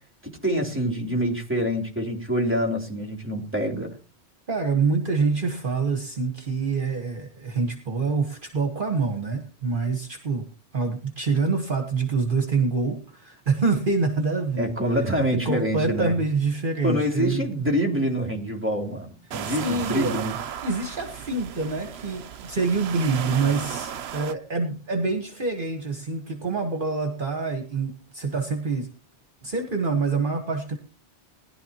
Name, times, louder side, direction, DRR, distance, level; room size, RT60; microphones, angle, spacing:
voice 1, 0.4-3.9 14.6-16.1 16.8-20.3, equal, 10° right, 1 dB, 3.3 m, -26 dB
voice 2, 4.5-10.5 10.7-14.7 15.3-17.5 19.4-20.3 20.6-28.9 29.4-30.8, right 4 dB, 50° right, 4 dB, 1.6 m, -26 dB
sound 1, 19.3-24.3, right 9 dB, 70° right, 1.0 m, -34 dB
19.5 x 11.5 x 2.9 m, 0.37 s
omnidirectional pair, 1.1 m